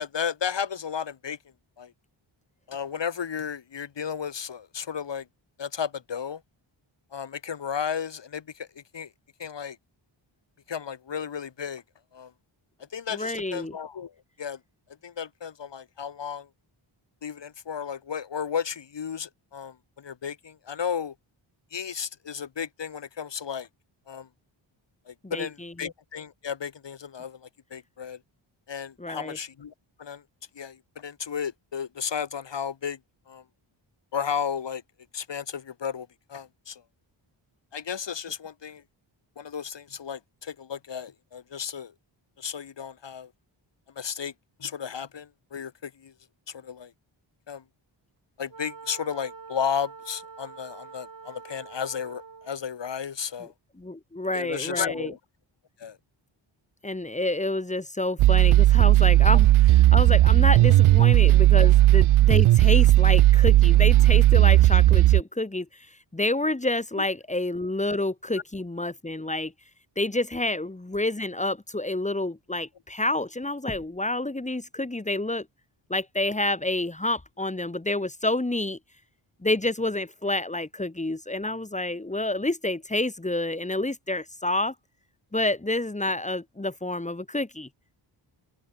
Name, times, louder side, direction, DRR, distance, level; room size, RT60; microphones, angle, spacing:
voice 1, 0.0-1.4 1.8-1.9 2.7-5.3 5.6-6.4 7.1-8.7 8.9-9.1 9.4-9.8 10.7-11.8 12.1-12.3 12.9-14.1 14.4-14.6 15.0-16.5 17.2-21.1 21.7-23.7 24.1-24.3 25.1-28.2 28.7-29.7 30.0-30.2 30.5-33.0 33.3-33.4 34.1-34.8 35.1-36.8 37.7-38.8 39.4-41.9 42.4-43.3 44.0-44.3 44.6-46.1 46.5-46.9 47.5-47.6 48.4-53.5 54.3-55.2 55.8-56.0 67.0-67.1 67.9-68.0, left 7 dB, 60° left, 3.0 m, -33 dB
voice 2, 13.1-13.7 25.2-25.9 29.0-29.4 53.8-55.1 56.8-65.9 66.1-69.5 70.0-75.5 75.9-78.8 79.4-84.7 85.3-87.7, left 2 dB, 15° left, 3.4 m, -28 dB
Wind instrument woodwind instrument, 48.5-52.7, right 5 dB, 40° right, 5.3 m, -45 dB
sound 1, 58.2-65.2, right 15 dB, 80° right, 0.5 m, -16 dB
open air
wide cardioid pair, 165°, 49 cm